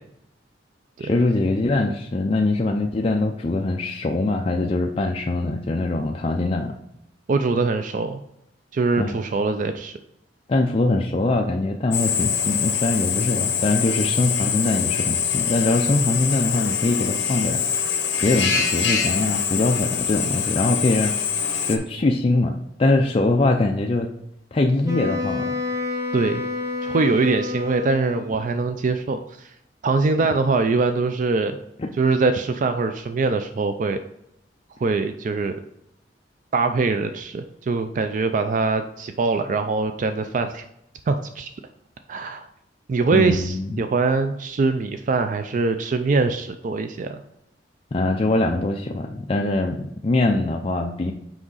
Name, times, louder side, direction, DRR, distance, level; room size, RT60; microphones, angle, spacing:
voice 1, 1.0-6.8 9.0-9.2 10.5-17.9 18.2-21.2 21.7-24.1 24.5-25.5 31.8-31.9 43.1-43.8 47.9-51.1, left 2 dB, 30° left, 2 dB, 0.4 m, -22 dB
voice 2, 7.3-8.2 8.7-10.0 26.1-26.4 26.8-29.5 29.8-31.6 32.0-34.0 34.8-35.5 36.5-40.6 41.1-41.5 42.1-42.5 42.9-47.2, right 3 dB, 45° right, 8 dB, 0.4 m, -23 dB
Drill, 11.9-21.8, left 7 dB, 75° left, 0.9 m, -24 dB
Wind instrument woodwind instrument, 24.8-28.4, left 3 dB, 20° right, 1.2 m, -28 dB
6.1 x 5.0 x 3.9 m, 0.78 s
head